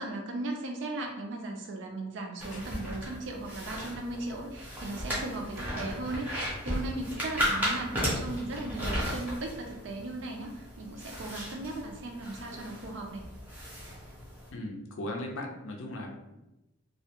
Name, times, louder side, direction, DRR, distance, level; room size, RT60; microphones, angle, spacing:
voice 1, 0.0-13.2, right 2 dB, 60° right, 2 dB, 0.4 m, -37 dB
sound 1, 2.4-14.5, equal, 10° right, 0.5 m, -35 dB
voice 2, 14.5-16.4, left 1 dB, 65° left, 2 dB, 0.4 m, -38 dB
2.2 x 2.1 x 2.8 m, 0.96 s
head